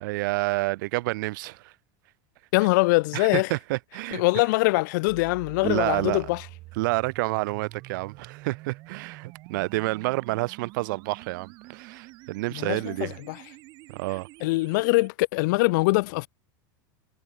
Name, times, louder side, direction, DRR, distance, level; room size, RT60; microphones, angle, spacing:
voice 1, 0.0-1.7 3.1-4.2 5.6-6.2 6.8-13.2 13.9-14.3, right 21 dB, 60° right, 0.9 m, -29 dB
voice 2, 2.5-3.5 4.1-6.4 12.5-13.4 14.4-16.3, left 23 dB, 60° left, 0.5 m, -23 dB
sound 1, 5.1-15.1, right 21 dB, 40° right, 1.4 m, -47 dB
supercardioid pair, 165°, 12 cm